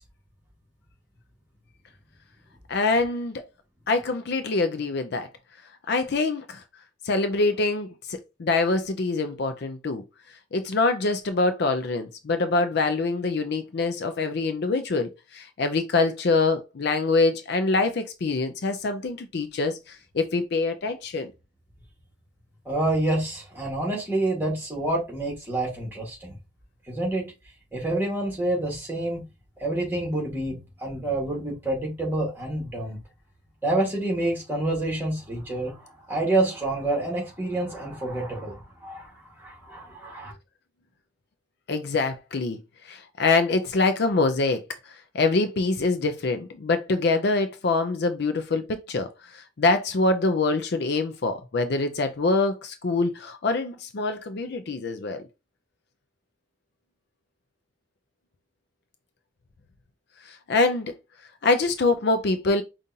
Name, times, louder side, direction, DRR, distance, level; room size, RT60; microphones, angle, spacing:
voice 1, 2.7-3.4 3.9-5.3 5.9-6.6 7.0-10.0 10.5-21.3 41.7-42.6 42.8-55.2 60.2-60.9 61.4-62.6, left 3 dB, 55° left, 0.4 m, -25 dB
voice 2, 22.6-26.3 26.9-27.3 27.7-29.2 29.6-33.0 33.6-39.1 39.4-40.3, right 2 dB, 10° right, 1.6 m, -28 dB
5.3 x 2.5 x 2.8 m
head